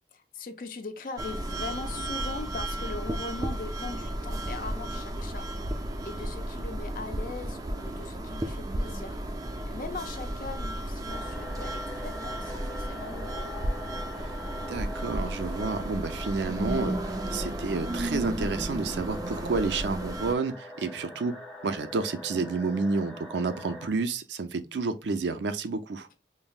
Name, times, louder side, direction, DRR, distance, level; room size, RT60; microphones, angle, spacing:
voice 1, 0.3-9.2 9.7-13.6, left 3 dB, 50° left, 0.5 m, -40 dB
sound 1, 1.2-20.3, right 1 dB, 20° right, 0.3 m, -34 dB
sound 2, 11.1-23.9, equal, 5° left, 0.7 m, -43 dB
voice 2, 14.7-21.4 21.6-26.1, right 4 dB, 90° right, 0.5 m, -30 dB
5.4 x 2.1 x 2.3 m
head